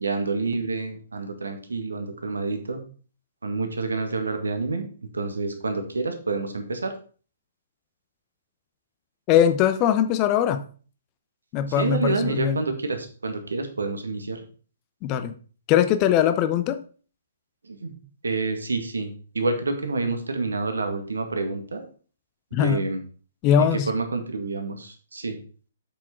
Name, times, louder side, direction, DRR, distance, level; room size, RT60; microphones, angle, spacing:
voice 1, 0.0-2.8 3.4-4.9 5.1-6.9 11.8-14.4 17.6-17.9 18.2-19.1 19.3-21.9 22.6-23.0 23.6-25.4, right 3 dB, 70° right, 6 dB, 1.9 m, -28 dB
voice 2, 9.3-10.6 11.5-12.6 15.0-15.3 15.7-16.8 22.5-22.8 23.4-23.9, left 9 dB, 30° left, 11 dB, 0.9 m, -21 dB
8.3 x 6.2 x 4.5 m, 0.40 s
figure-of-eight pair, 120°, 0 cm